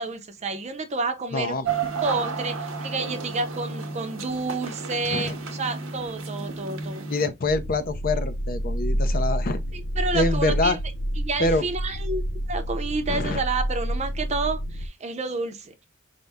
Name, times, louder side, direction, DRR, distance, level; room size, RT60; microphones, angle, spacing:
voice 1, 0.0-1.6 2.0-7.0 9.7-10.8 11.2-15.9, right 3 dB, 35° right, 0.6 m, -30 dB
voice 2, 1.3-1.7 5.1-5.4 7.1-9.6 10.1-10.8 11.4-11.6 13.1-13.4, left 2 dB, 45° left, 0.6 m, -25 dB
sound 1, 1.6-7.3, right 4 dB, 85° right, 0.8 m, -32 dB
sound 2, 7.4-14.9, equal, 90° left, 0.6 m, -28 dB
5.3 x 2.1 x 3.4 m
head